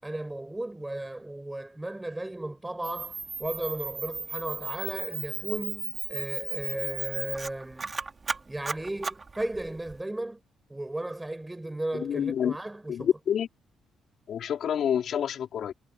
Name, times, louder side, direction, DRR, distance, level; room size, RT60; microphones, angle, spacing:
voice 1, 0.0-7.9 8.5-10.4 10.7-13.1, right 1 dB, 10° right, 6.9 m, -35 dB
Camera, 2.8-10.0, right 4 dB, 35° right, 5.1 m, -35 dB
voice 2, 11.9-12.6 12.9-13.5 14.3-15.7, left 9 dB, 65° left, 3.7 m, -28 dB
cardioid pair, 90°, 0 cm